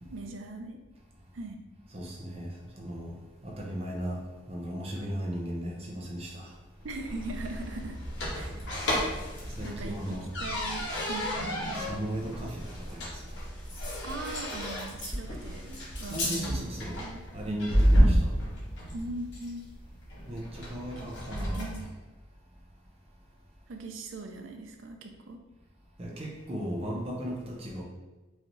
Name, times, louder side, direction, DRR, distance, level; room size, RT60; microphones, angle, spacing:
voice 1, 0.1-0.8 1.3-1.6 6.8-8.0 8.3-8.6 9.6-11.4 14.0-17.6 18.9-19.7 21.6-21.9 23.7-25.4, right 2 dB, 80° right, 4 dB, 0.5 m, -40 dB
voice 2, 1.9-3.2 3.4-6.6 9.5-10.3 11.7-13.2 16.1-17.0 17.3-18.3 20.3-21.7 26.0-27.8, equal, 30° right, -1 dB, 0.7 m, -36 dB
sound 1, 6.8-21.9, equal, 70° left, 1.2 m, -31 dB
4.7 x 2.7 x 3.1 m, 1.2 s
head